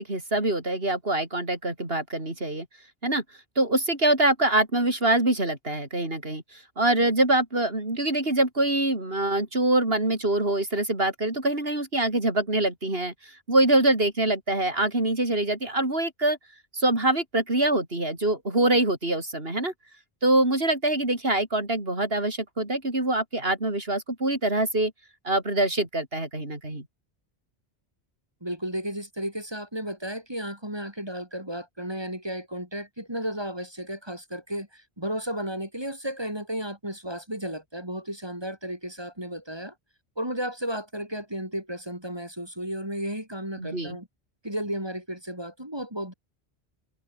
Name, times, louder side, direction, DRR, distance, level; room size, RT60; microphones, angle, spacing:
voice 1, 0.0-2.7 3.0-3.2 3.6-13.1 13.5-16.4 16.7-19.7 20.2-24.9 25.2-26.9 43.6-43.9, right 2 dB, 60° right, 5.6 m, -24 dB
voice 2, 28.4-39.7 40.2-44.1 44.4-46.1, equal, 25° right, 6.4 m, -33 dB
omnidirectional pair, 1.1 m